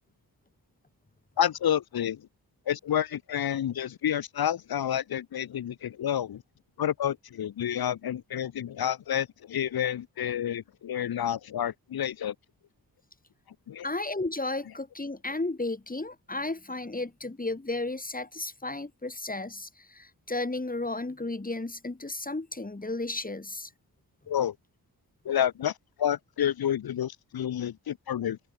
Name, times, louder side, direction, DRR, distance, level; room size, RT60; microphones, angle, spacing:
voice 1, 1.4-2.3 2.7-6.4 6.8-12.3 13.7-13.9 24.3-24.5 25.2-28.4, left 10 dB, 70° left, 0.9 m, -29 dB
voice 2, 13.8-23.7, left 2 dB, 20° left, 6.7 m, -33 dB
open air
wide cardioid pair, 90°, 38 cm